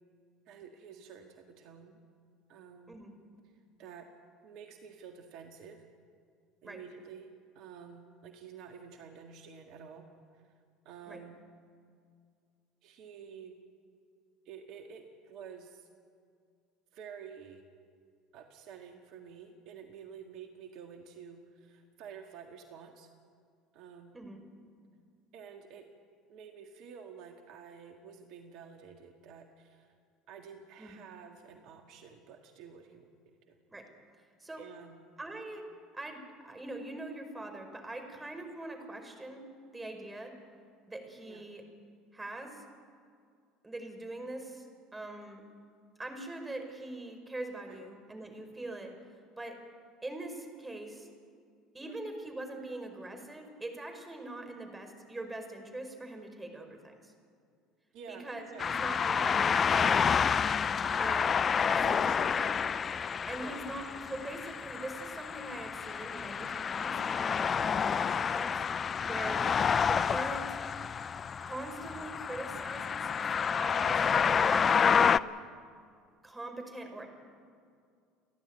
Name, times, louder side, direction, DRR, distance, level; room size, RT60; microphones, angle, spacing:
voice 1, 0.5-2.0 2.5-3.0 3.4-3.5 3.8-4.1 4.4-5.8 6.6-10.1 10.3-10.6 10.9-11.4 12.8-13.6 14.5-15.9 16.9-17.7 18.3-23.1 23.7-24.2 25.3-25.9 26.3-29.9 30.3-33.1 33.5-33.6 34.6-35.0 41.3-41.5 47.7-47.8 51.8-52.0 57.9-58.7 60.8-62.6 63.4-63.7 69.2-69.4 73.7-74.1, right 7 dB, 60° right, 4 dB, 1.8 m, -50 dB
voice 2, 35.2-35.7 35.9-39.5 39.7-40.3 40.9-41.6 42.1-42.7 43.6-44.7 44.9-45.4 46.0-49.0 49.4-49.6 50.0-51.1 51.7-57.1 58.1-60.3 61.0-62.6 63.3-69.4 69.8-70.6 71.4-73.2 73.6-75.2 76.2-77.1, right 2 dB, 15° right, 5 dB, 4.9 m, -42 dB
sound 1, 58.6-75.2, left 6 dB, 35° left, 0.6 m, -29 dB
29.5 x 11.5 x 9.2 m, 2.3 s
hypercardioid pair, 75°, 0 cm